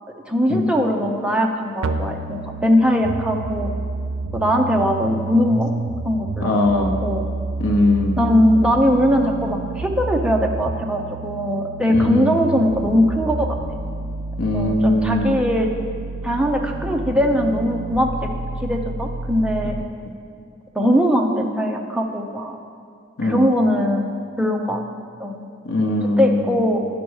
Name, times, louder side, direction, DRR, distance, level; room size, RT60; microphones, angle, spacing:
voice 1, 0.3-3.7 4.3-5.7 6.0-7.3 8.2-13.6 14.5-15.7 16.2-18.3 18.6-19.7 20.7-22.6 23.2-24.8 25.2-25.5 26.2-26.8, equal, 5° right, 1 dB, 0.5 m, -20 dB
sound 1, 1.8-19.8, right 3 dB, 85° right, 0.4 m, -29 dB
voice 2, 6.4-6.9 7.6-8.2 11.9-12.3 14.4-15.4 23.2-23.5 25.6-26.5, left 2 dB, 75° left, 2 dB, 0.7 m, -20 dB
10.0 x 5.3 x 4.7 m, 2.3 s
head